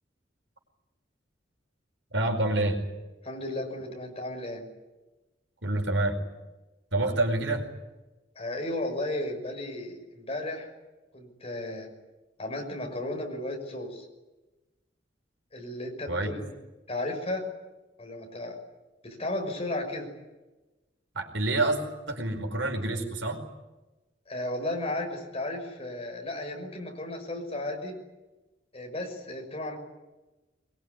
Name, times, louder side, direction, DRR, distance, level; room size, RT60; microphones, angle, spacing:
voice 1, 2.1-2.8 5.6-6.2 6.9-7.7 16.1-16.3 21.1-21.8 22.1-23.4, right 2 dB, 85° right, 4 dB, 4.9 m, -27 dB
voice 2, 3.2-4.6 8.4-10.7 11.1-11.9 12.4-14.1 15.5-16.5 16.9-17.4 18.0-18.6 19.0-20.1 24.3-27.9 28.7-29.8, left 1 dB, 35° left, 3 dB, 6.0 m, -34 dB
23.0 x 22.5 x 9.9 m, 1.1 s
head